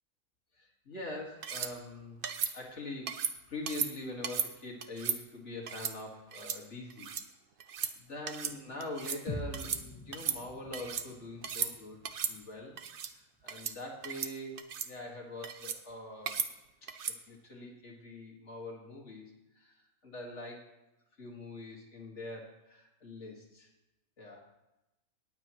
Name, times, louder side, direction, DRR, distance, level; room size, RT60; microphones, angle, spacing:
voice 1, 0.6-2.2 2.4-7.1 8.0-12.0 12.3-12.8 13.1-16.4 17.0-19.3 19.6-19.8 20.0-20.6 21.2-23.7 24.2-24.4, left 2 dB, 50° left, -1 dB, 2.3 m, -44 dB
sound 1, 1.4-1.7 2.2-2.5 3.1-3.3 3.7-3.9 4.2-4.5 4.8-5.2 5.7-5.9 6.3-6.6 6.9-7.2 7.6-7.9 8.3-8.5 8.8-9.2 9.5-9.8 10.1-11.1 11.4-11.7 12.0-12.3 12.8-13.1 13.5-13.7 14.0-14.3 14.6-14.9 15.4-15.8 16.3-16.5 16.9-17.2, right 7 dB, 50° right, 0.6 m, -35 dB
sound 2, 9.3-13.2, left 1 dB, 25° left, 1.0 m, -45 dB
18.5 x 7.5 x 3.1 m, 0.95 s
omnidirectional pair, 1.5 m